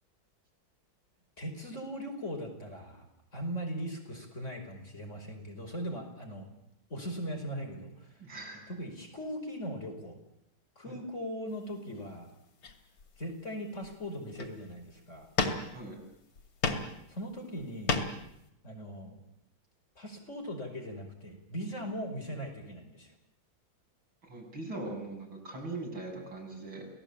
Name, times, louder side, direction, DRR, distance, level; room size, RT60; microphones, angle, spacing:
voice 1, 1.4-3.1 3.3-6.5 6.9-8.1 8.7-10.2 10.8-12.3 13.2-15.3 17.1-18.0 18.6-19.2 20.0-23.1, equal, 35° left, 2 dB, 5.6 m, -39 dB
voice 2, 8.2-8.7 10.9-11.0 15.7-16.0 24.2-26.9, right 2 dB, 75° right, 0 dB, 8.3 m, -41 dB
sound 1, 11.9-12.1 12.6-13.3 13.8-13.9 14.3-14.7 15.4-16.0 16.4-17.0 17.3-18.3, left 3 dB, 70° left, 3.2 m, -33 dB
28.5 x 18.5 x 8.8 m, 0.82 s
omnidirectional pair, 2.2 m